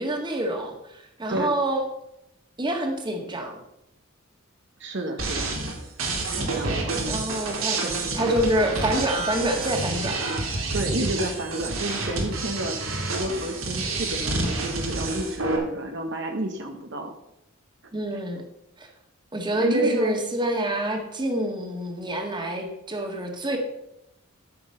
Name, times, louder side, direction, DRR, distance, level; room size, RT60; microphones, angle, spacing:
voice 1, 0.0-1.8 2.6-3.6 6.5-6.8 7.1-7.8 8.1-10.2 17.9-18.4 18.8-18.9 19.3-23.6, right 1 dB, 20° right, 3 dB, 1.7 m, -27 dB
voice 2, 4.8-5.5 6.4-7.2 7.8-8.1 10.7-12.8 13.1-17.1 18.1-18.2 19.6-20.2, right 1 dB, 60° right, 4 dB, 1.2 m, -31 dB
sound 1, 5.2-15.6, right 3 dB, 85° right, 2.3 m, -28 dB
13.0 x 6.2 x 5.5 m, 0.83 s
head